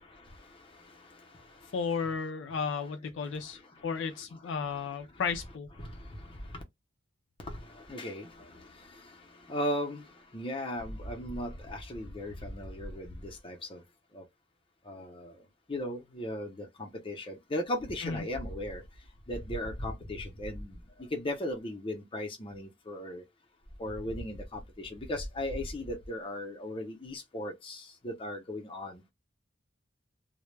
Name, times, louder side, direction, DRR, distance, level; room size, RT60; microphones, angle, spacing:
voice 1, 1.7-5.7 18.0-18.2, left 5 dB, 65° left, 0.3 m, -34 dB
voice 2, 5.8-6.2 6.5-6.6 7.5-8.7 9.5-10.0 10.3-13.8 14.1-14.2 14.9-15.3 15.7-18.8 19.3-23.2 23.8-29.0, left 1 dB, 25° left, 0.6 m, -37 dB
2.2 x 2.0 x 3.1 m
head